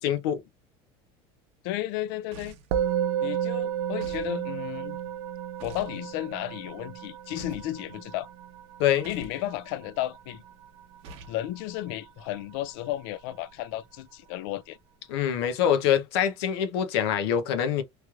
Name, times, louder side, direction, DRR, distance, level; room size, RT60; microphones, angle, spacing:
voice 1, 0.0-0.4 8.8-9.1 15.1-17.8, left 9 dB, 90° left, 0.7 m, -24 dB
voice 2, 1.6-2.6 3.2-5.0 5.6-8.3 9.0-10.4 11.3-14.8, left 14 dB, 65° left, 0.4 m, -33 dB
sound 1, 2.3-2.8 4.0-4.3 5.6-6.0 7.4-7.7 9.0-9.4 11.0-11.4, right 3 dB, 45° right, 0.8 m, -45 dB
Musical instrument, 2.7-12.2, right 10 dB, 65° right, 0.4 m, -33 dB
3.1 x 3.0 x 2.4 m
cardioid pair, 170°, 13 cm